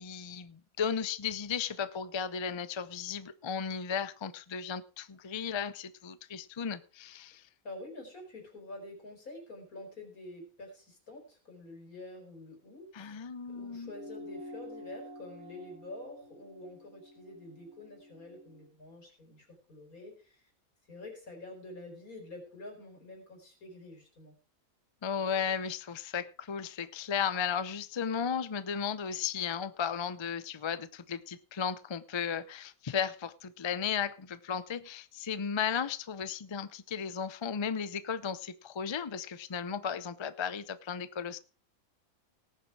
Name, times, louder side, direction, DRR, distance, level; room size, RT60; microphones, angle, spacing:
voice 1, 0.0-7.4 12.9-13.9 25.0-41.4, left 7 dB, 40° left, 15 dB, 0.3 m, -35 dB
voice 2, 7.6-20.5 20.9-24.3, left 2 dB, 75° left, 2 dB, 4.8 m, -47 dB
sound 1, 13.8-18.6, left 1 dB, 75° right, 2.8 m, -49 dB
18.5 x 7.2 x 4.7 m, 0.37 s
omnidirectional pair, 1.5 m